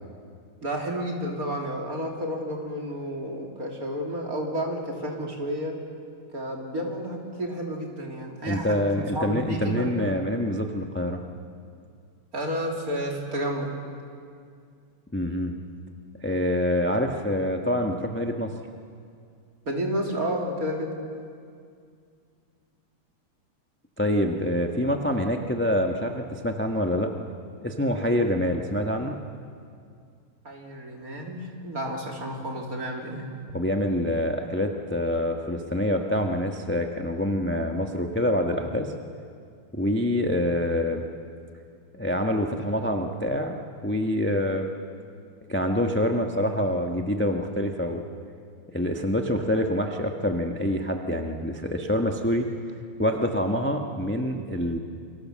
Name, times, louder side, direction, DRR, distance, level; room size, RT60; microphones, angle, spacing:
voice 1, 0.6-5.8 6.3-10.2 12.3-13.7 19.7-20.9 30.4-33.3, equal, 40° right, 0 dB, 3.7 m, -31 dB
voice 2, 8.5-11.2 15.1-15.5 16.2-18.5 24.0-27.1 27.6-29.1 33.5-38.9 39.7-41.0 41.9-44.7 45.5-48.0 48.7-52.5 53.0-54.8, left 1 dB, 5° left, 3 dB, 1.0 m, -26 dB
29.0 x 24.5 x 7.6 m, 2.3 s
omnidirectional pair, 2.4 m